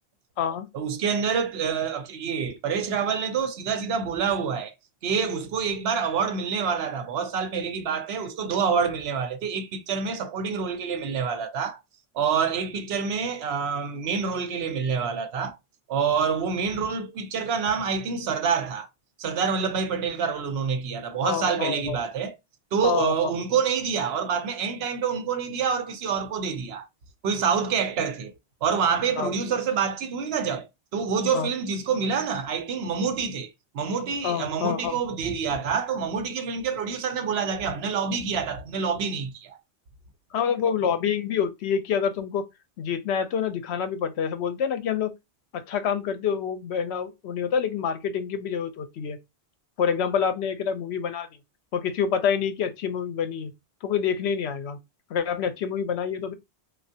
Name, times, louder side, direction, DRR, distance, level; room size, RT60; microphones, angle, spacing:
voice 1, 0.7-4.7 5.0-11.8 12.1-15.6 15.9-18.9 19.2-22.4 22.7-26.9 27.2-28.3 28.6-39.6, right 6 dB, 70° right, 0.8 m, -27 dB
voice 2, 21.2-22.0 22.8-23.3 29.2-29.3 31.3-31.5 34.2-35.0 40.3-42.4 42.8-45.1 45.5-49.2 49.8-51.3 51.7-53.5 53.8-54.8 55.1-56.3, left 7 dB, 75° left, 0.9 m, -27 dB
3.2 x 2.3 x 2.6 m
omnidirectional pair, 1.1 m